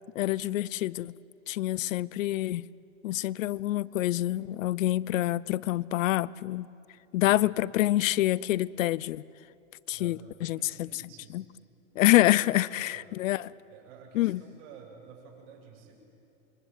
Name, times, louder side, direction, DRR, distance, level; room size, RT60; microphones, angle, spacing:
voice 1, 0.2-1.2 1.5-2.7 3.0-6.7 7.1-9.2 9.9-10.6 11.3-11.4 12.0-13.5 14.1-14.4, left 15 dB, 70° left, 0.7 m, -26 dB
voice 2, 9.9-11.4 12.2-13.1 13.7-16.0, right 6 dB, 55° right, 8.0 m, -51 dB
27.0 x 23.5 x 9.3 m
hypercardioid pair, 125°, 41 cm